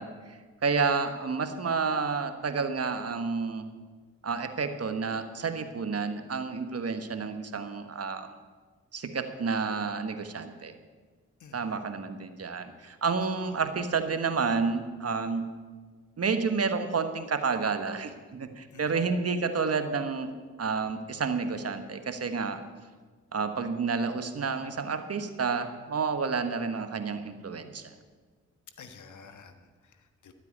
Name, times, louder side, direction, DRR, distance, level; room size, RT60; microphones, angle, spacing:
voice 1, 0.0-3.6 4.2-8.3 8.9-10.7 11.5-15.5 16.2-20.3 20.6-22.6 23.3-27.9, right 5 dB, 50° right, 8 dB, 1.5 m, -30 dB
voice 2, 11.4-11.8 13.2-13.6 18.7-19.1 28.8-30.3, left 5 dB, 70° left, 8 dB, 1.5 m, -51 dB
12.5 x 8.2 x 9.6 m, 1.4 s
supercardioid pair, 45°, 31 cm